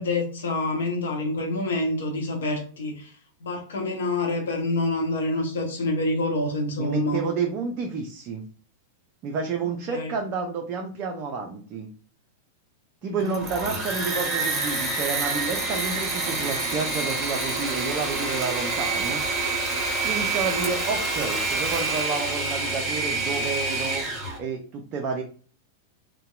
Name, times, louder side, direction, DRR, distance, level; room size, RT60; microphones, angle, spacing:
voice 1, 0.0-3.1 3.4-7.2 9.9-10.1 13.0-13.3 20.5-20.6, left 2 dB, 65° left, 2 dB, 0.8 m, -27 dB
voice 2, 6.8-8.4 9.2-11.9 13.0-19.2 20.0-24.1 24.4-25.2, right 5 dB, 40° right, 2 dB, 0.4 m, -30 dB
Engine / Mechanisms, 13.2-24.4, right 3 dB, 20° right, 1.0 m, -27 dB
2.7 x 2.1 x 2.3 m, 0.43 s
figure-of-eight pair, 95°, 0 cm